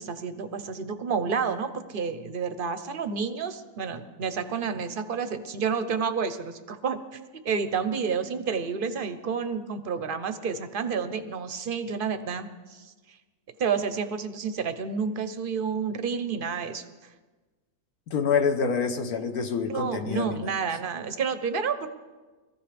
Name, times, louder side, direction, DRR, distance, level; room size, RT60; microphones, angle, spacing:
voice 1, 0.0-7.2 7.4-13.2 13.6-17.1 19.7-21.9, right 6 dB, 50° right, 10 dB, 0.7 m, -30 dB
voice 2, 18.1-20.4, left 5 dB, 70° left, 6 dB, 1.4 m, -26 dB
22.0 x 14.5 x 3.4 m, 1.3 s
omnidirectional pair, 1.7 m